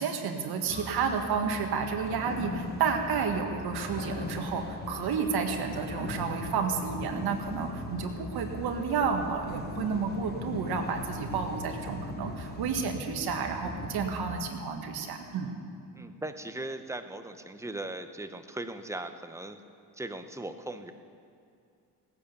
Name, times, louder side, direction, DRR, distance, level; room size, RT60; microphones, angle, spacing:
voice 1, 0.0-15.6, right 5 dB, 70° right, 4 dB, 1.9 m, -31 dB
sound 1, 0.7-14.4, left 2 dB, 25° left, 1.4 m, -39 dB
voice 2, 15.9-19.6 19.9-20.9, right 2 dB, 5° right, 8 dB, 0.8 m, -38 dB
17.5 x 10.0 x 6.9 m, 2.5 s
cardioid pair, 110°, 40 cm